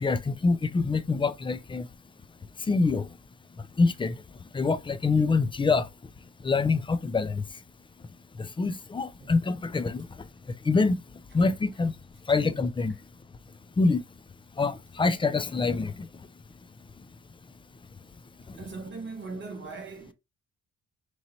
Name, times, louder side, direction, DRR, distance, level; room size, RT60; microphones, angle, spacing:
voice 1, 0.0-1.8 2.7-3.1 3.8-4.1 4.5-5.8 6.4-7.4 8.6-10.0 10.7-10.9 11.3-11.9 12.3-12.9 13.8-14.0 14.6-15.9, left 4 dB, 15° left, 0.4 m, -25 dB
voice 2, 18.6-20.1, right 4 dB, 40° right, 0.8 m, -39 dB
3.1 x 2.7 x 3.8 m
cardioid pair, 90°, 30 cm